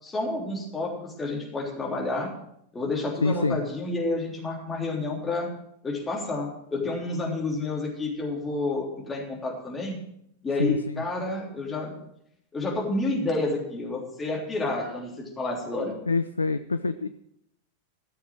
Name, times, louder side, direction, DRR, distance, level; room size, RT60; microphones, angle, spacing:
voice 1, 0.0-2.3 2.7-5.5 5.8-10.0 10.4-11.9 12.5-16.0, left 2 dB, 15° left, -2 dB, 3.3 m, -29 dB
voice 2, 3.2-3.6 10.6-10.8 16.1-17.1, left 3 dB, 80° left, 12 dB, 0.4 m, -25 dB
14.5 x 7.1 x 6.1 m, 0.75 s
figure-of-eight pair, 90°, 0 cm